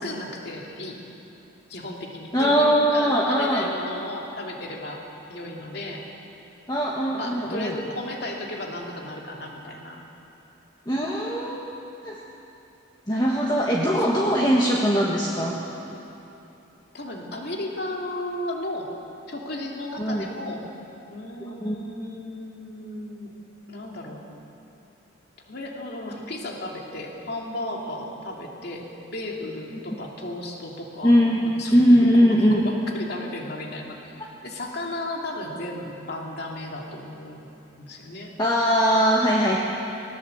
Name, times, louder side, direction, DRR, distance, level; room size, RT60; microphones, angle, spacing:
voice 1, 0.0-1.0 1.7-6.1 7.1-10.0 14.1-14.4 16.9-18.9 19.3-20.7 21.1-23.3 23.7-24.2 25.5-38.3 39.4-39.6, left 1 dB, 55° left, 0 dB, 2.8 m, -34 dB
voice 2, 2.3-3.7 6.7-7.8 10.9-11.7 12.0-12.2 13.1-15.6 20.0-20.3 21.6-21.8 31.0-31.4 31.7-32.6 38.4-39.6, equal, 20° left, -3 dB, 1.6 m, -20 dB
19.0 x 19.0 x 7.9 m, 3.0 s
head